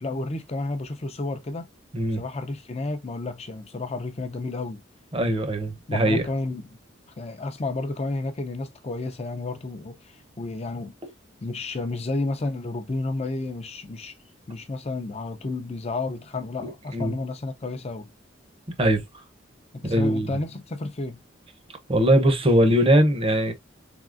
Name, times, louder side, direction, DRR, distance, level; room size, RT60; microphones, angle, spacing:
voice 1, 0.0-1.7 2.1-4.8 5.9-6.7 7.2-10.9 11.4-14.1 14.5-18.1 19.7-21.2, left 2 dB, 35° left, 0.5 m, -31 dB
voice 2, 5.1-6.2 16.9-17.2 18.8-19.0 19.8-20.3 21.9-23.5, right 1 dB, 30° right, 0.8 m, -20 dB
4.0 x 3.6 x 2.5 m
head